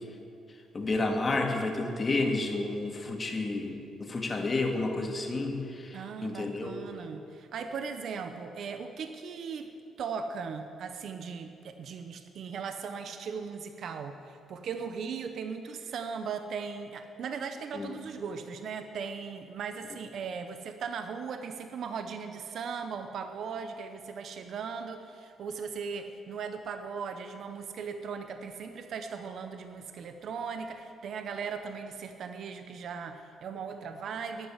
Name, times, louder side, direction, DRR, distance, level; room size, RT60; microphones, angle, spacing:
voice 1, 0.7-6.8 17.7-17.9, left 2 dB, 30° left, 2 dB, 1.9 m, -31 dB
voice 2, 5.9-9.7 10.0-34.5, right 6 dB, 65° right, 7 dB, 0.8 m, -38 dB
12.0 x 8.0 x 9.9 m, 2.6 s
cardioid pair, 90°, 0 cm